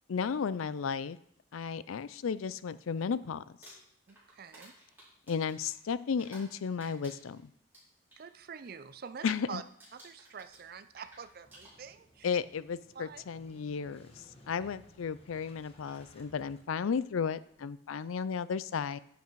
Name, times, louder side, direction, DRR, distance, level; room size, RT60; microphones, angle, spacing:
voice 1, 0.1-1.2 1.5-3.4 5.3-7.5 9.2-9.6 12.2-19.0, left 6 dB, 90° left, 16 dB, 0.4 m, -34 dB
Crumpling crinkling, 3.5-6.5 6.8-8.2 8.6-8.9 9.2-9.5 9.8-12.2 13.1-13.2 15.2-15.3 15.7-16.0, right 1 dB, 10° right, 4.3 m, -56 dB
voice 2, 4.1-4.7 8.2-9.6 9.9-12.4 12.9-13.2 14.6-14.7, right 6 dB, 50° right, 11 dB, 0.5 m, -46 dB
Motorcycle / Engine starting, 10.4-17.6, left 1 dB, 30° left, 1.3 m, -60 dB
10.0 x 8.1 x 4.7 m, 0.69 s
head